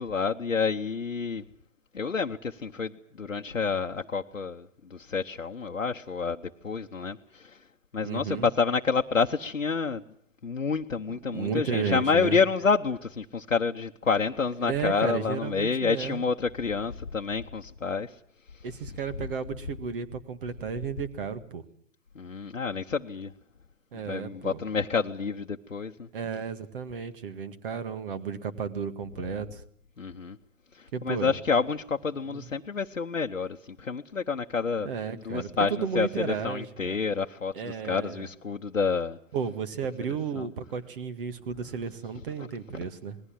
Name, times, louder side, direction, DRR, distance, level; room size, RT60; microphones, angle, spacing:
voice 1, 0.0-1.4 1.9-7.6 7.9-10.0 10.4-18.1 22.1-23.3 24.0-26.1 30.0-30.4 30.7-34.9 35.2-39.2 40.4-40.5 42.4-42.5, left 5 dB, 85° left, 1.0 m, -29 dB
voice 2, 8.0-8.5 11.1-12.4 14.6-16.2 18.6-21.6 23.9-24.6 26.1-29.6 30.9-31.3 32.3-32.5 34.8-37.0 37.5-38.3 39.3-43.2, right 6 dB, 45° right, 1.9 m, -33 dB
26.5 x 20.0 x 7.4 m
figure-of-eight pair, 125°, 38 cm